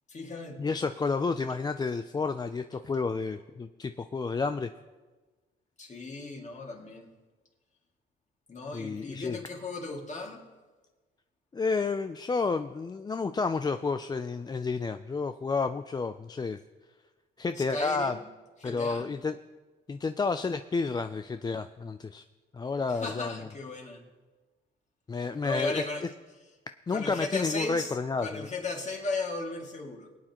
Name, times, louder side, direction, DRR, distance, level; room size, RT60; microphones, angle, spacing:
voice 1, 0.1-0.8 5.8-7.1 8.5-10.4 17.6-18.3 18.6-19.1 22.9-24.0 25.4-26.1 26.9-30.1, left 3 dB, 35° left, 1 dB, 2.2 m, -36 dB
voice 2, 0.6-4.7 8.7-9.4 11.5-16.6 17.4-18.1 18.6-19.4 19.9-22.2 22.5-23.3 25.1-25.8 26.9-28.5, left 4 dB, 20° left, 9 dB, 0.4 m, -30 dB
21.5 x 8.8 x 3.0 m, 1.3 s
cardioid pair, 90°, 20 cm